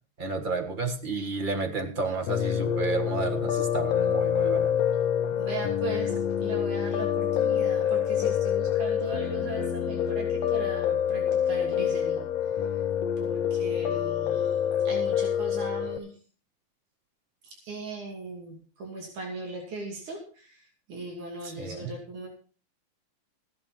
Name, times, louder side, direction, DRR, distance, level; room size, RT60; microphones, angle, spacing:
voice 1, 0.2-4.7 21.4-21.9, right 4 dB, 45° right, 4 dB, 0.6 m, -31 dB
Piano, 2.3-16.0, left 9 dB, 70° left, 1.6 m, -27 dB
voice 2, 5.4-12.2 13.2-14.6 14.8-16.1 17.4-22.3, right 3 dB, 75° right, 0 dB, 4.1 m, -39 dB
14.5 x 10.5 x 4.4 m, 0.39 s
omnidirectional pair, 3.4 m